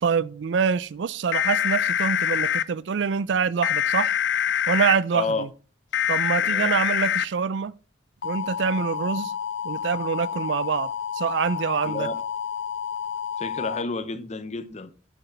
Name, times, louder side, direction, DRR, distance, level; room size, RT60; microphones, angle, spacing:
voice 1, 0.0-4.2 4.7-5.5 6.1-7.7 8.2-9.3 9.6-12.1, right 6 dB, 70° right, 0.4 m, -25 dB
sound 1, 1.3-2.6 3.6-5.0 5.9-7.3 8.2-13.8, left 9 dB, 85° left, 0.5 m, -26 dB
voice 2, 5.1-5.5 6.4-6.8 11.8-12.2 13.4-14.9, left 3 dB, 40° left, 0.7 m, -30 dB
7.2 x 7.1 x 4.3 m
head